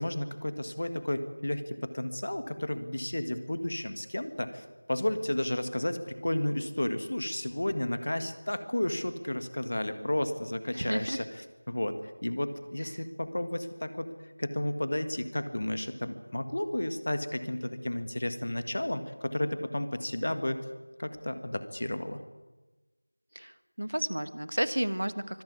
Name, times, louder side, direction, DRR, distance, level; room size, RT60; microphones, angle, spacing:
voice 1, 0.0-11.3 11.7-14.1 14.4-20.6 21.0-22.2, left 1 dB, 40° left, 10 dB, 1.7 m, -32 dB
voice 2, 10.7-11.2 12.8-13.0 23.3-25.4, equal, 70° right, 13 dB, 1.5 m, -32 dB
24.5 x 16.0 x 9.6 m, 1.2 s
figure-of-eight pair, 175°, 0 cm